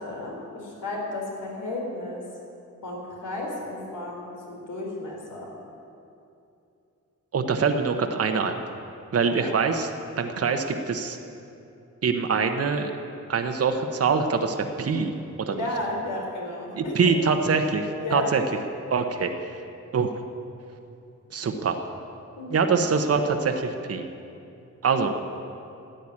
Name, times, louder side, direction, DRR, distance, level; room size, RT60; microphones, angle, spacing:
voice 1, 0.0-2.2 2.8-5.5 9.3-9.6 15.4-17.1 18.0-18.3 22.4-22.7, left 2 dB, 75° left, -2 dB, 4.1 m, -33 dB
voice 2, 7.3-8.6 9.1-9.9 10.2-11.2 12.0-12.9 13.3-15.1 15.5-15.6 16.7-18.4 18.9-19.6 19.9-20.1 21.3-21.8 22.5-24.0 24.8-25.1, right 5 dB, 50° right, 6 dB, 1.0 m, -24 dB
13.0 x 9.2 x 9.7 m, 2.7 s
wide cardioid pair, 100°, 30 cm